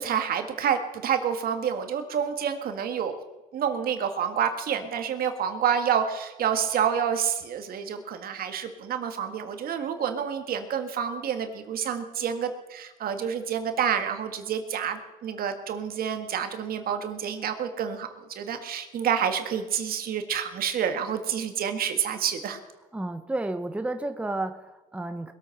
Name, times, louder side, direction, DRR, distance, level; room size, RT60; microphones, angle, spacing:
voice 1, 0.0-3.2 3.5-18.1 18.4-22.6, right 8 dB, 60° right, 7 dB, 1.9 m, -28 dB
voice 2, 22.9-25.3, right 2 dB, 5° right, 7 dB, 0.9 m, -31 dB
21.5 x 8.4 x 5.9 m, 1.1 s
cardioid pair, 110°, 17 cm